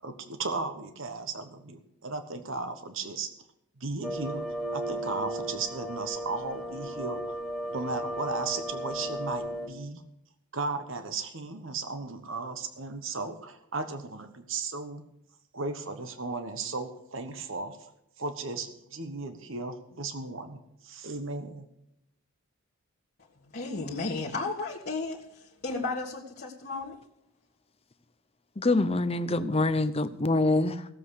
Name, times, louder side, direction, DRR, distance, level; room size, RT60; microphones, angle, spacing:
voice 1, 0.0-3.3 3.8-4.4 4.7-7.4 7.7-10.0 10.5-15.1 15.5-17.9 18.2-21.7, right 3 dB, 60° right, 1.2 m, -35 dB
sound 1, 4.0-9.7, right 1 dB, ahead, 1.3 m, -35 dB
voice 2, 23.5-27.0, left 3 dB, 45° left, 1.6 m, -34 dB
voice 3, 28.6-30.9, left 2 dB, 25° left, 0.7 m, -25 dB
17.0 x 7.6 x 6.4 m
head